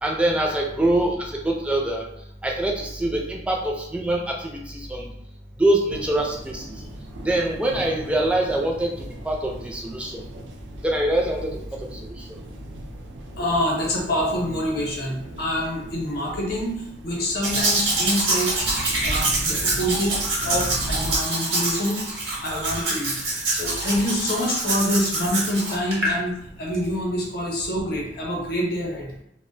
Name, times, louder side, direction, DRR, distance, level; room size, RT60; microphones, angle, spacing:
voice 1, 0.0-2.0 2.4-5.1 5.6-6.6 7.2-8.9 9.3-10.1 10.8-11.5, right 1 dB, 5° right, -1 dB, 0.3 m, -24 dB
sound 1, 5.9-21.2, right 1 dB, 85° right, 0.4 m, -37 dB
voice 2, 13.4-18.6 19.0-20.2 20.4-22.0 22.4-29.1, equal, 60° left, -1 dB, 0.7 m, -26 dB
Domestic sounds home sounds, 17.4-26.2 26.7-26.8, right 2 dB, 70° right, 0.8 m, -25 dB
2.3 x 2.1 x 2.5 m, 0.76 s
head